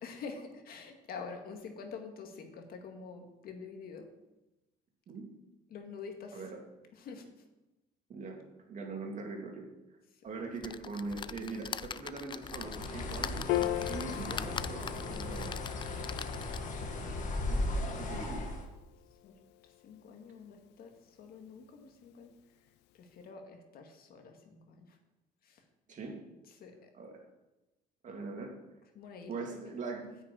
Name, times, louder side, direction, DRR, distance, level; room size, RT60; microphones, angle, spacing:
voice 1, 0.0-4.1 5.7-6.4 6.9-7.3 17.7-17.8 19.2-19.4 19.8-20.9 21.2-22.3 23.0-25.0 25.4-25.6 26.6-26.9 29.0-29.7, left 5 dB, 65° left, 4 dB, 2.0 m, -47 dB
voice 2, 8.1-8.4 8.7-9.7 10.2-13.4 13.9-15.7 17.5-18.5 25.9-26.2 26.9-27.2 28.0-28.6 29.3-30.1, right 3 dB, 45° right, 1 dB, 2.7 m, -42 dB
sound 1, 10.6-16.8 17.4-17.5 17.7-17.8, left 7 dB, 30° left, 0.4 m, -43 dB
Bird, 12.4-18.7, left 2 dB, 50° left, 1.9 m, -37 dB
Piano, 13.5-20.1, left 15 dB, 85° left, 0.5 m, -40 dB
9.7 x 6.6 x 8.7 m, 1.0 s
cardioid pair, 110°, 17 cm